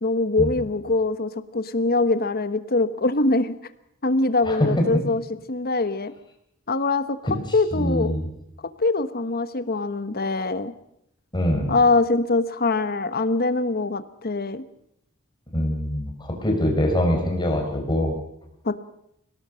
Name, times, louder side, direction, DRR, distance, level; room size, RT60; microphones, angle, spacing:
voice 1, 0.0-3.5 4.0-5.2 5.5-6.1 6.7-7.2 7.5-8.1 8.8-10.7 11.7-14.6 18.6-18.7, left 3 dB, 45° left, 12 dB, 1.2 m, -23 dB
voice 2, 7.7-8.3 11.3-11.8 15.5-18.1, left 1 dB, 20° left, 2 dB, 5.0 m, -23 dB
24.0 x 18.0 x 6.4 m, 0.77 s
head